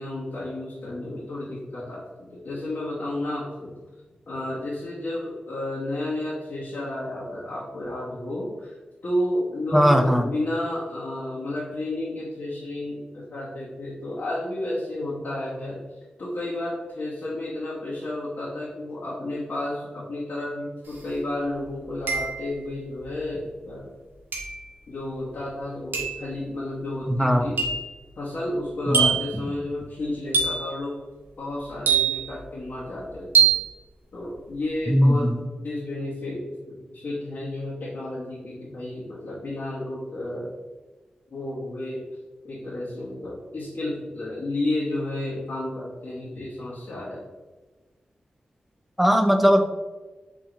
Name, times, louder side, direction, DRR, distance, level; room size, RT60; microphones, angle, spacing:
voice 1, 0.0-3.7 4.3-8.8 9.0-15.8 16.2-23.9 24.9-27.6 28.2-30.9 31.4-33.5 34.1-35.3 35.6-40.5 41.3-42.0 42.4-47.2, left 1 dB, 70° left, -8 dB, 1.2 m, -31 dB
voice 2, 9.7-10.3 27.1-27.5 28.9-29.1 34.9-35.4 49.0-49.7, equal, 5° right, 7 dB, 0.5 m, -19 dB
sound 1, 20.9-21.0 22.1-22.6 24.3-24.7 25.9-26.2 27.6-27.9 28.9-29.4 30.3-30.7 31.9-32.4 33.3-33.7, right 6 dB, 80° right, 1.0 m, -23 dB
4.9 x 2.8 x 3.8 m, 1.2 s
wide cardioid pair, 75°, 3 cm